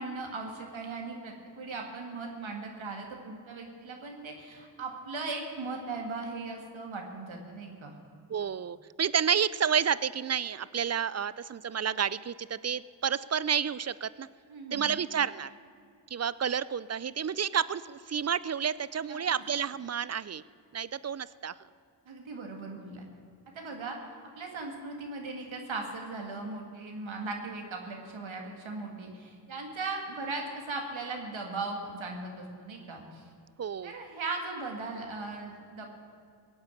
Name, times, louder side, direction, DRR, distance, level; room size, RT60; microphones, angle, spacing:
voice 1, 0.0-7.9 14.5-14.9 19.1-19.2 22.1-23.0 23.5-24.0 24.4-33.2 33.8-35.9, right 3 dB, 75° right, 2 dB, 2.0 m, -38 dB
voice 2, 8.3-14.3 14.7-15.5 16.1-20.4 20.7-21.5 33.6-33.9, right 7 dB, 35° right, 19 dB, 0.4 m, -30 dB
17.0 x 8.0 x 8.3 m, 2.3 s
cardioid pair, 45°, 47 cm